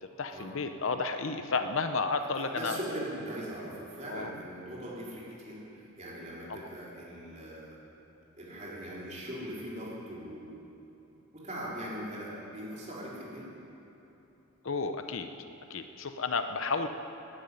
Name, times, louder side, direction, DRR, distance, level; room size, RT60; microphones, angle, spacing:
voice 1, 0.2-2.8 4.1-4.3 6.5-6.6 14.6-15.3 15.7-16.9, left 4 dB, 60° left, 8 dB, 0.7 m, -32 dB
voice 2, 2.3-7.8 8.3-10.6 11.3-13.4, right 1 dB, 30° right, -6 dB, 3.9 m, -40 dB
13.0 x 11.0 x 9.5 m, 3.0 s
head